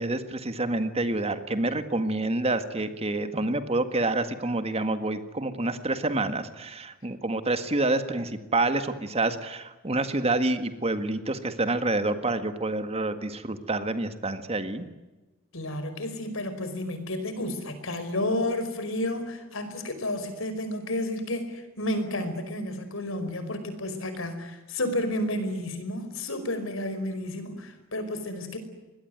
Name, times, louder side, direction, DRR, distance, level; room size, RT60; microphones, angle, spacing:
voice 1, 0.0-14.9, right 2 dB, 30° right, 9 dB, 1.8 m, -28 dB
voice 2, 15.5-28.6, left 1 dB, 70° left, 10 dB, 5.1 m, -31 dB
25.5 x 21.5 x 9.4 m, 1.1 s
head